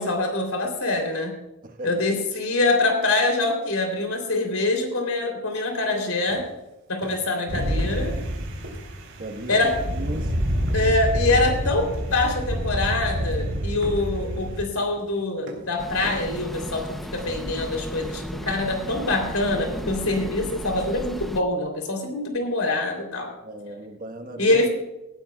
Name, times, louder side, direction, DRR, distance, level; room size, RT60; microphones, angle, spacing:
voice 1, 0.0-1.4 1.8-6.5 6.9-8.1 9.5-9.8 10.7-23.3 24.4-24.7, left 2 dB, 85° left, 4 dB, 3.3 m, -24 dB
sound 1, 5.7-5.8 6.1-6.7 7.0-7.4 7.8-8.3 8.6-9.2 9.5-11.6 11.9-12.9 13.2-13.5 13.8-17.8, right 1 dB, 60° right, 3.3 m, -42 dB
sound 2, 7.5-14.6, equal, 80° right, 3.8 m, -27 dB
voice 2, 9.2-9.6 9.9-10.3 23.4-24.6, right 1 dB, 40° right, 5 dB, 1.4 m, -36 dB
sound 3, 15.8-21.4, equal, ahead, 0.7 m, -34 dB
18.0 x 12.5 x 2.4 m, 0.97 s
head